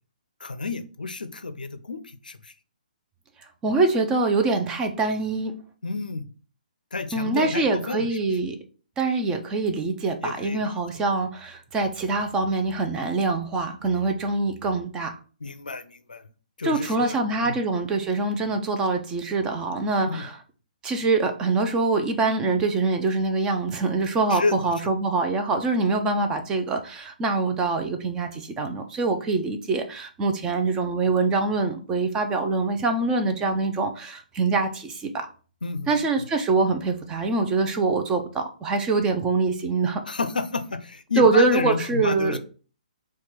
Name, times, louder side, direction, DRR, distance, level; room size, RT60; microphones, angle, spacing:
voice 1, 0.4-2.5 5.8-6.3 6.9-8.1 10.2-10.7 15.4-16.3 16.6-17.2 17.4-17.6 20.1-20.3 24.3-24.6 35.6-36.0 40.1-42.4, left 4 dB, 75° left, 11 dB, 0.5 m, -30 dB
voice 2, 3.6-5.5 7.1-8.6 9.0-15.2 16.6-20.4 20.8-35.3 35.9-40.0 41.2-42.4, right 3 dB, 15° right, 5 dB, 0.6 m, -24 dB
4.4 x 2.4 x 4.3 m, 0.38 s
figure-of-eight pair, 130°, 5 cm